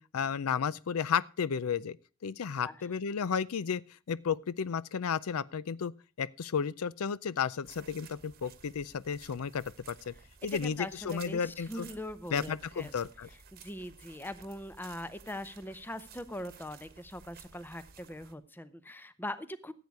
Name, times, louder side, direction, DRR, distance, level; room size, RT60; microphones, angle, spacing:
voice 1, 0.0-2.0 2.2-3.8 4.1-5.9 6.2-10.1 10.4-11.9 12.3-13.3, left 6 dB, 85° left, 0.5 m, -33 dB
sound 1, 7.6-18.3, right 6 dB, 45° right, 1.2 m, -54 dB
voice 2, 10.5-13.0 13.5-19.7, left 1 dB, 10° left, 0.6 m, -41 dB
14.5 x 8.3 x 4.7 m
head